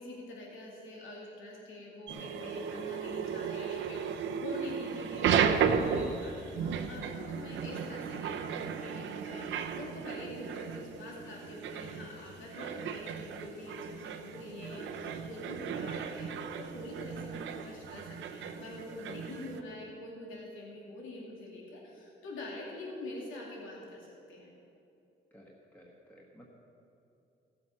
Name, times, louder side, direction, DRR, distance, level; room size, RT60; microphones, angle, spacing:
voice 1, 0.0-24.5, left 1 dB, 80° left, -3 dB, 2.4 m, -45 dB
sound 1, 2.1-19.6, right 7 dB, 75° right, 0.8 m, -35 dB
voice 2, 25.3-26.5, equal, 10° left, -3 dB, 1.4 m, -56 dB
15.5 x 7.7 x 5.7 m, 2.8 s
cardioid pair, 90°, 20 cm